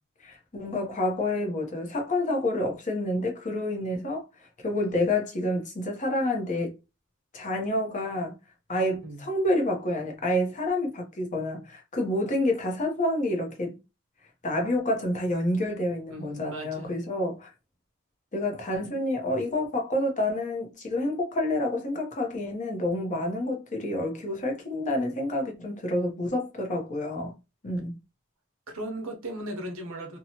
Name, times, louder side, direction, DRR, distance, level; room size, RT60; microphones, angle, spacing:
voice 1, 0.2-4.2 4.6-6.7 7.3-8.4 8.7-13.8 14.4-17.5 18.3-27.3 27.6-27.9, left 1 dB, 35° left, 0.8 m, -28 dB
voice 2, 16.1-16.9 28.7-30.2, right 1 dB, 65° right, 0.9 m, -37 dB
2.9 x 2.3 x 2.8 m
head